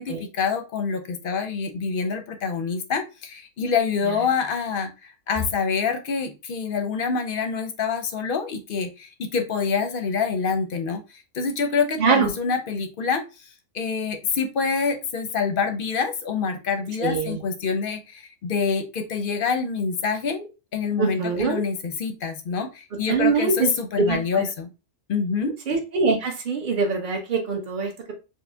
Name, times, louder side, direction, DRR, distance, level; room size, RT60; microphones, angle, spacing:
voice 1, 0.0-13.2 13.7-24.7 25.1-25.5, left 5 dB, 55° left, 6 dB, 0.7 m, -26 dB
voice 2, 12.0-12.3 17.0-17.4 21.0-21.6 23.1-23.7 24.0-24.4 25.7-28.1, right 4 dB, 40° right, 1 dB, 1.0 m, -23 dB
4.6 x 2.1 x 3.3 m, 0.29 s
omnidirectional pair, 1.4 m